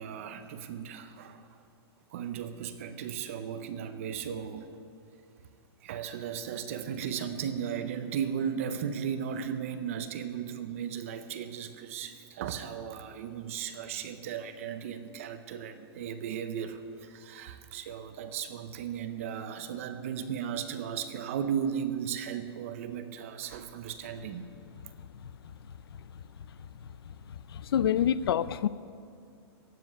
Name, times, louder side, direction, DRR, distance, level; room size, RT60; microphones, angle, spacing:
voice 1, 0.0-1.6 2.1-4.7 5.8-24.5, right 8 dB, 30° right, 9 dB, 0.6 m, -36 dB
voice 2, 27.5-28.7, left 9 dB, 60° left, 16 dB, 0.5 m, -26 dB
15.5 x 7.7 x 9.8 m, 2.3 s
hypercardioid pair, 180°, 14 cm